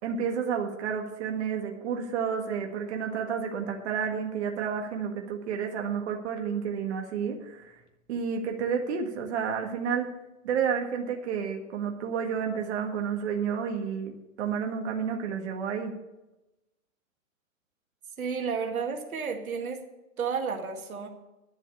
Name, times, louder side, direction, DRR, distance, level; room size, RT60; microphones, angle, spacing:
voice 1, 0.0-7.7 8.1-10.1 10.4-15.9, right 7 dB, 50° right, 2 dB, 1.8 m, -30 dB
voice 2, 18.2-19.8 20.2-21.1, right 6 dB, 85° right, 3 dB, 2.0 m, -31 dB
11.0 x 7.0 x 8.3 m, 1.0 s
hypercardioid pair, 140°, 41 cm